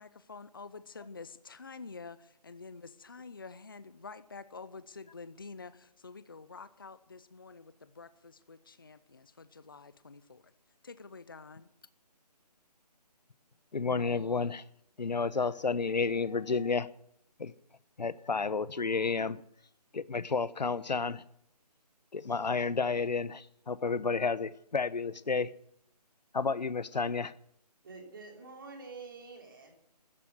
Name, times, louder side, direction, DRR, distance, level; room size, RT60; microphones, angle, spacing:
voice 1, 0.0-10.5 10.8-11.7, left 4 dB, 30° left, 0.6 m, -48 dB
voice 2, 13.7-14.6 15.0-16.9 17.4-17.5 18.0-19.4 19.9-21.2 22.1-25.5 26.3-27.3, left 4 dB, 90° left, 1.0 m, -31 dB
voice 3, 27.8-29.7, right 4 dB, 30° right, 3.3 m, -47 dB
13.5 x 10.5 x 9.3 m
hypercardioid pair, 175°, 21 cm